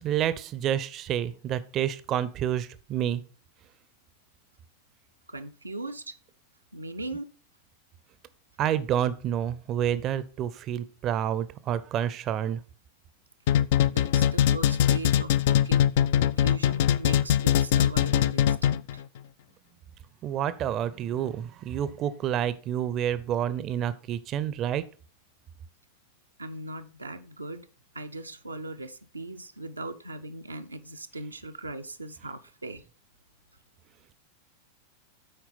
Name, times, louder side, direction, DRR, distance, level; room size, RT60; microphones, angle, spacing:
voice 1, 0.0-3.2 8.6-12.6 20.2-24.8, right 10 dB, 35° right, 15 dB, 0.6 m, -29 dB
voice 2, 5.3-6.2 6.7-7.3 13.9-19.0 26.4-27.7 27.9-32.8, right 2 dB, 80° right, 6 dB, 0.6 m, -39 dB
sound 1, 13.5-19.0, left 10 dB, 55° left, 0.3 m, -22 dB
8.7 x 4.6 x 5.7 m, 0.38 s
figure-of-eight pair, 90°, 0 cm